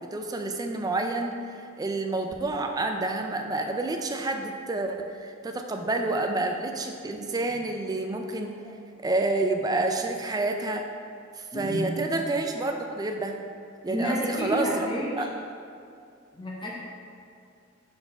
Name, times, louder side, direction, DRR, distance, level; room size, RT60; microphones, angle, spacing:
voice 1, 0.0-1.4 1.8-8.5 9.0-10.8 11.4-13.3 13.8-14.9 15.2-15.3, right 2 dB, 20° right, 4 dB, 0.4 m, -29 dB
voice 2, 11.5-11.9 13.9-15.3 16.3-16.7, equal, 25° left, -5 dB, 0.8 m, -30 dB
4.5 x 4.1 x 5.5 m, 2.4 s
head